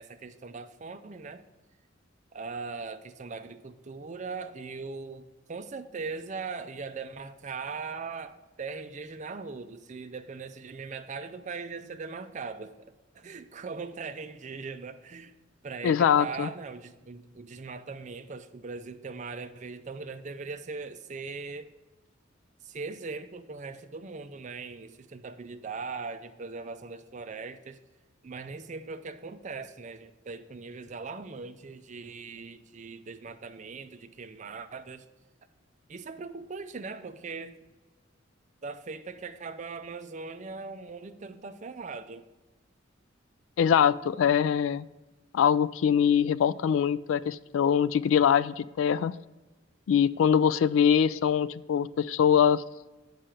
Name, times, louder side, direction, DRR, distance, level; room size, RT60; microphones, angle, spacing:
voice 1, 0.0-1.5 2.3-15.4 15.6-21.7 22.6-27.8 28.2-35.0 35.9-37.6 38.6-42.3, right 4 dB, 40° right, 10 dB, 0.5 m, -40 dB
voice 2, 15.8-16.5 43.6-44.9 45.3-49.1 49.9-52.6, left 8 dB, 80° left, 18 dB, 0.3 m, -23 dB
7.5 x 5.6 x 5.0 m, 1.1 s
head